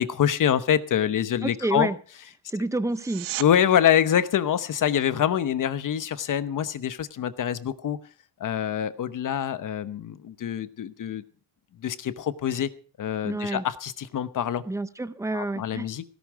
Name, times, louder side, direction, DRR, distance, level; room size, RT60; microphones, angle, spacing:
voice 1, 0.0-1.9 3.4-8.0 8.4-11.2 11.8-12.7 13.0-14.6 15.3-16.0, left 9 dB, 40° left, 13 dB, 1.0 m, -25 dB
voice 2, 1.4-2.0 2.5-3.3 13.2-13.6 14.7-15.9, right 2 dB, 5° right, 13 dB, 0.6 m, -29 dB
sound 1, 2.9-3.5 14.9-15.0, right 14 dB, 80° right, 1.0 m, -34 dB
17.0 x 11.5 x 4.7 m, 0.41 s
cardioid pair, 165°, 47 cm